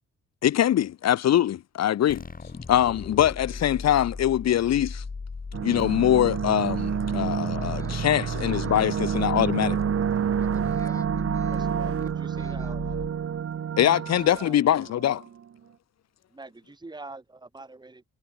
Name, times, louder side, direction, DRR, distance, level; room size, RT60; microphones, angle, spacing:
voice 1, 0.4-2.2 2.7-5.0 5.6-9.8 13.8-15.2, left 11 dB, 60° left, 0.9 m, -23 dB
sound 1, 2.1-13.6, left 4 dB, 30° left, 4.4 m, -37 dB
sound 2, 5.5-15.3, right 8 dB, 50° right, 1.8 m, -29 dB
voice 2, 7.6-8.0 8.6-8.7 10.4-12.7, left 1 dB, 10° left, 6.7 m, -50 dB
voice 3, 11.5-13.2 14.2-14.6 16.3-18.0, right 3 dB, 15° right, 2.4 m, -45 dB
cardioid pair, 90°, 30 cm